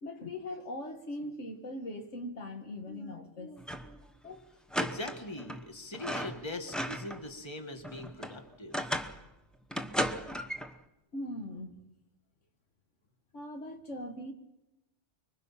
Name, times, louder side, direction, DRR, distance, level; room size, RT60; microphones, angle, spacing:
voice 1, 0.0-4.4 11.1-11.8 13.3-14.3, left 1 dB, 70° left, 5 dB, 2.0 m, -41 dB
sound 1, 3.6-4.0 4.2-4.3 4.7-5.6 5.9-7.2 7.6-9.2 9.7-10.7, equal, ahead, 0.8 m, -35 dB
voice 2, 4.8-8.8, left 2 dB, 20° left, 5 dB, 1.8 m, -41 dB
25.0 x 23.5 x 5.8 m, 0.97 s
omnidirectional pair, 1.3 m